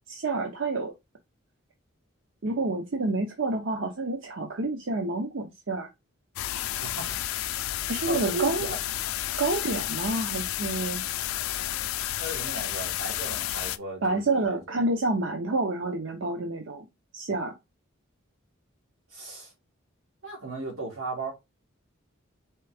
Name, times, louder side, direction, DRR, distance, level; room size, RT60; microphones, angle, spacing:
voice 1, 0.1-0.9 2.4-5.9 7.9-8.7 9.4-11.0 14.0-16.9 17.1-17.5, right 2 dB, 65° right, 0.7 m, -28 dB
sound 1, 6.4-13.8, left 13 dB, 85° left, 0.3 m, -31 dB
voice 2, 6.8-7.2 8.1-8.8 12.2-14.8 19.1-19.5 20.2-21.3, right 2 dB, 90° right, 2.1 m, -36 dB
4.5 x 3.4 x 3.4 m
head